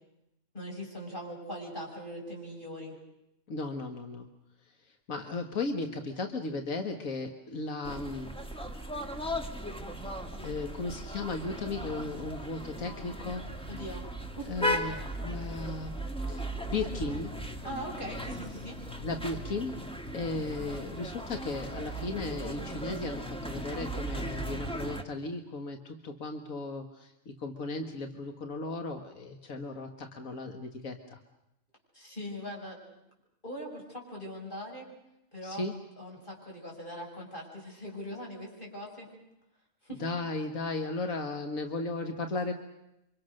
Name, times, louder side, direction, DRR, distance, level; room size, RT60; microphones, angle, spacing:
voice 1, 0.5-3.0 13.7-14.0 14.4-14.5 17.6-18.8 31.9-32.8 33.4-34.9 35.3-35.6 36.0-39.1 39.8-40.0, equal, 40° left, -1 dB, 7.5 m, -41 dB
voice 2, 3.5-4.3 4.7-8.4 9.5-9.6 10.4-13.4 14.5-15.9 16.3-17.4 19.0-19.8 20.1-31.2 35.4-35.8 40.0-42.5, left 3 dB, 85° left, 5 dB, 2.0 m, -36 dB
sound 1, 7.8-25.0, equal, 5° left, 1.7 m, -37 dB
28.0 x 25.5 x 6.5 m, 0.87 s
omnidirectional pair, 1.4 m